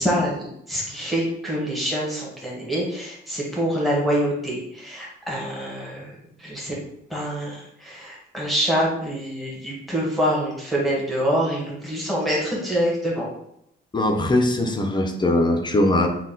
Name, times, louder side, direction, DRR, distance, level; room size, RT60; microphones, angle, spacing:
voice 1, 0.0-6.8 7.1-13.3, equal, ahead, -5 dB, 1.3 m, -25 dB
voice 2, 13.9-16.1, left 1 dB, 20° left, 4 dB, 0.5 m, -20 dB
3.9 x 2.3 x 3.9 m, 0.76 s
cardioid pair, 90°, 20 cm